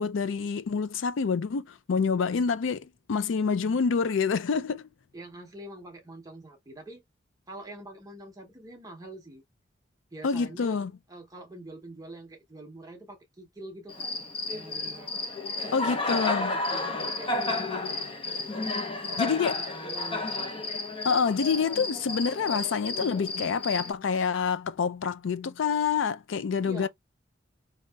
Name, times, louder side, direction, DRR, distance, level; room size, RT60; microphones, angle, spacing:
voice 1, 0.0-4.9 10.2-10.9 15.7-16.6 19.2-19.6 21.0-26.9, left 5 dB, 75° left, 0.4 m, -27 dB
voice 2, 5.1-7.0 7.5-9.4 10.1-14.1 14.5-15.1 15.6-18.5 19.0-20.6 26.6-26.9, right 2 dB, 20° right, 0.8 m, -45 dB
Cricket, 13.9-23.9, left 2 dB, 25° left, 0.6 m, -32 dB
5.2 x 2.8 x 2.2 m
head